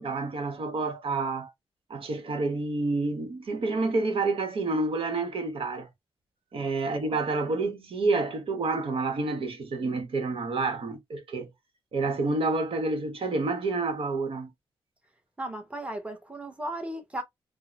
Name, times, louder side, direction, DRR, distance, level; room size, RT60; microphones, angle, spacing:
voice 1, 0.0-1.5 1.9-5.9 6.5-11.5 11.9-14.5, right 3 dB, 65° right, 1.0 m, -29 dB
voice 2, 15.4-17.2, right 1 dB, 15° right, 1.0 m, -35 dB
3.7 x 2.1 x 2.9 m
cardioid pair, 90°, 10 cm